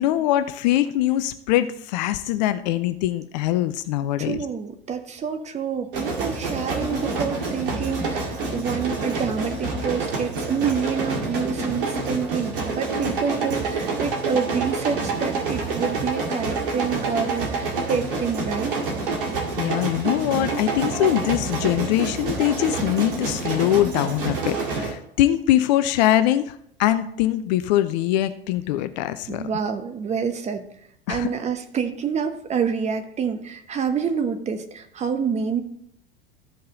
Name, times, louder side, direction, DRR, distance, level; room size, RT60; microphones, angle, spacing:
voice 1, 0.0-4.4 19.3-29.5 31.1-31.3, left 13 dB, 45° left, 12 dB, 0.6 m, -23 dB
voice 2, 4.2-18.7 29.3-30.6 31.1-35.6, right 6 dB, 25° right, 7 dB, 1.0 m, -27 dB
sound 1, 5.9-24.9, right 3 dB, 65° right, 2.0 m, -27 dB
14.0 x 5.4 x 3.9 m, 0.71 s
figure-of-eight pair, 80°, 29 cm